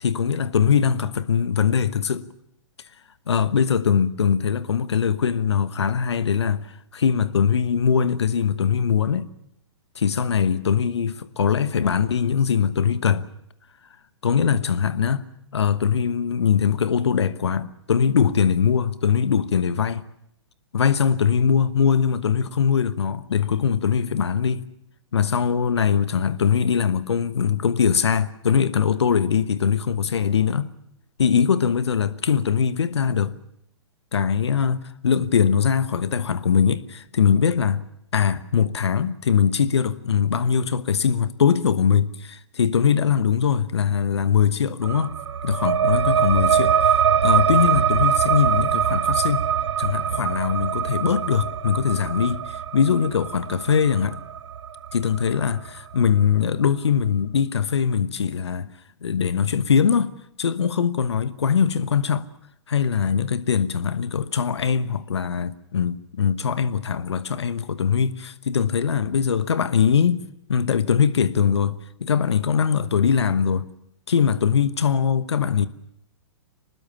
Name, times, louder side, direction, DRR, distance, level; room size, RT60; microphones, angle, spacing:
voice 1, 0.0-2.3 3.3-9.3 10.0-13.2 14.2-15.3 15.5-20.1 20.7-24.6 25.1-30.7 31.2-33.4 34.1-37.8 38.1-45.1 45.4-49.5 49.8-54.2 54.9-58.7 59.0-60.1 60.4-62.3 62.7-70.2 70.5-73.7 74.1-75.7, left 7 dB, 65° left, 1.1 m, -21 dB
sound 1, 44.8-56.0, right 8 dB, 65° right, 1.0 m, -23 dB
24.5 x 20.0 x 7.0 m
figure-of-eight pair, 110°, 15 cm